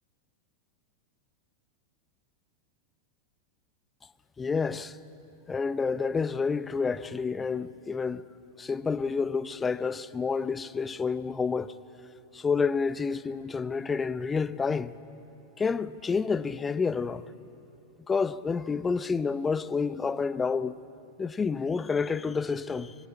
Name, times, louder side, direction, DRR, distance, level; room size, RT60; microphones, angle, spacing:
voice 1, 4.4-5.0 5.5-8.2 8.6-11.8 12.3-14.9 15.6-17.2 18.1-20.8 21.2-22.9, left 5 dB, 15° left, 0.7 m, -29 dB
25.5 x 22.5 x 8.7 m
figure-of-eight pair, 90°, 0 cm